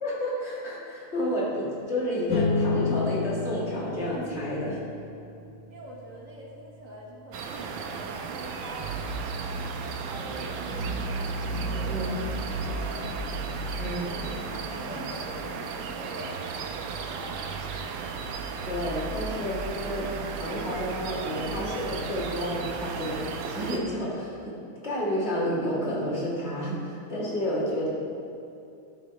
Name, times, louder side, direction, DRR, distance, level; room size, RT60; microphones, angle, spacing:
voice 1, 0.0-4.8 11.9-12.1 13.8-14.1 18.7-24.6 24.8-27.9, equal, 30° left, -7 dB, 2.1 m, -30 dB
sound 1, 2.3-13.1, left 4 dB, 75° left, 0.6 m, -34 dB
voice 2, 5.7-8.9 10.0-11.2 11.6-12.2 12.6-13.2 14.0-17.6 27.4-27.6, equal, 50° right, -2 dB, 1.1 m, -44 dB
sound 2, 7.3-23.8, right 4 dB, 75° right, 1.4 m, -34 dB
sound 3, 10.1-15.7, left 6 dB, 90° left, 1.5 m, -44 dB
12.0 x 4.4 x 4.5 m, 2.6 s
omnidirectional pair, 2.3 m